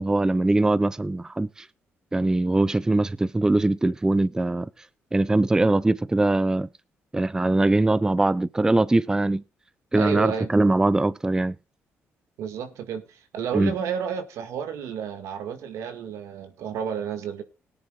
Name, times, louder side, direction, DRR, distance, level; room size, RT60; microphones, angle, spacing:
voice 1, 0.0-1.7 2.1-4.7 5.1-6.7 7.1-9.4 9.9-11.6 13.5-13.7, right 2 dB, 15° right, 0.5 m, -22 dB
voice 2, 9.9-10.5 12.4-17.4, right 7 dB, 80° right, 2.0 m, -31 dB
19.0 x 10.0 x 2.4 m
cardioid pair, 90°, 5 cm